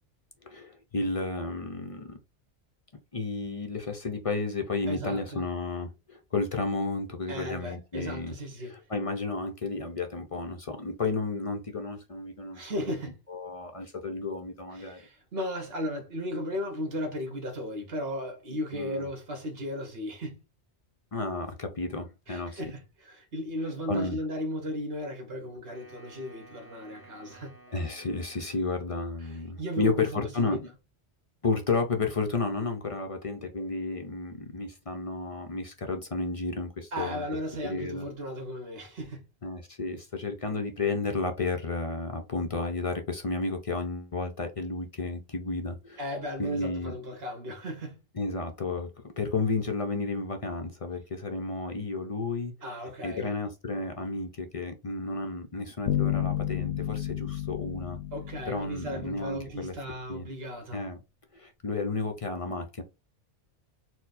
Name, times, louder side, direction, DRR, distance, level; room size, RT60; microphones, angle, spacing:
voice 1, 0.4-2.2 3.1-8.3 8.6-12.6 13.3-15.0 18.7-19.1 21.1-22.6 23.9-24.2 27.7-30.7 31.4-37.2 37.6-38.1 39.4-46.0 46.4-46.9 48.2-48.9 49.2-52.5 53.0-58.0 58.5-59.7 60.1-60.3 60.7-61.0 61.3-62.8, left 3 dB, 40° left, 0.5 m, -32 dB
voice 2, 4.9-5.4 7.3-8.7 12.5-13.2 14.7-20.4 22.3-27.5 29.2-30.6 36.9-39.2 46.0-48.0 52.6-53.3 58.1-60.8, equal, 60° right, 1.4 m, -36 dB
Wind instrument woodwind instrument, 25.7-29.2, right 2 dB, 40° right, 1.5 m, -54 dB
sound 1, 55.9-59.6, left 11 dB, 80° left, 0.9 m, -32 dB
4.4 x 2.1 x 4.0 m
omnidirectional pair, 1.2 m